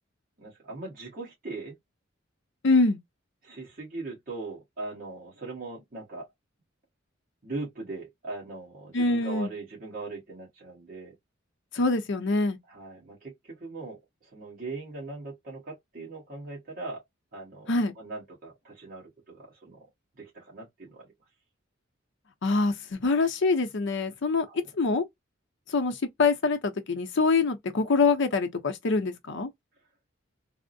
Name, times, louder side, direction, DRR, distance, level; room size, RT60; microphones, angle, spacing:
voice 1, 0.4-1.7 3.4-6.3 7.4-11.1 12.7-17.0 17.3-19.9 20.2-21.1 24.4-24.6, right 3 dB, 45° right, 1.4 m, -40 dB
voice 2, 2.6-3.0 8.9-9.5 11.7-12.6 17.7-17.9 22.4-24.5 24.8-25.0 25.7-29.5, left 3 dB, 65° left, 0.6 m, -25 dB
3.4 x 2.0 x 2.6 m
head